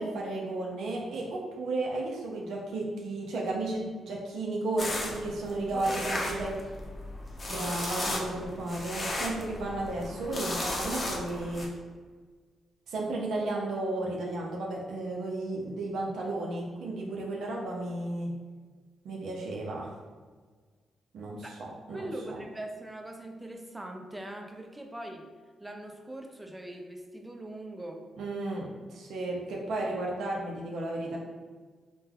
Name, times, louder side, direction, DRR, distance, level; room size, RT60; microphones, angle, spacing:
voice 1, 0.0-6.5 7.5-11.7 12.9-18.3 19.0-19.9 21.1-22.4 28.2-31.2, right 2 dB, 75° right, -2 dB, 0.4 m, -33 dB
sound 1, 4.8-11.7, left 1 dB, 45° left, 0.6 m, -35 dB
voice 2, 5.7-6.5 21.4-21.6 21.9-25.2 25.6-28.1, right 1 dB, 15° right, 2 dB, 0.4 m, -41 dB
3.2 x 2.1 x 2.2 m, 1.5 s
supercardioid pair, 60°, 0 cm